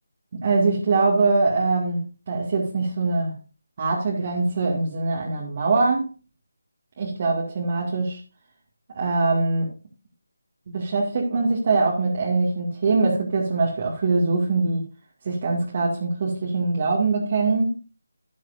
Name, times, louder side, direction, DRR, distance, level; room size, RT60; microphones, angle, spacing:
voice 1, 0.3-3.4 3.8-6.1 7.0-8.2 8.9-9.7 10.7-14.8 15.2-17.8, right 3 dB, 35° right, 2.3 m, -23 dB
13.0 x 10.5 x 2.7 m
figure-of-eight pair, 160°, 0 cm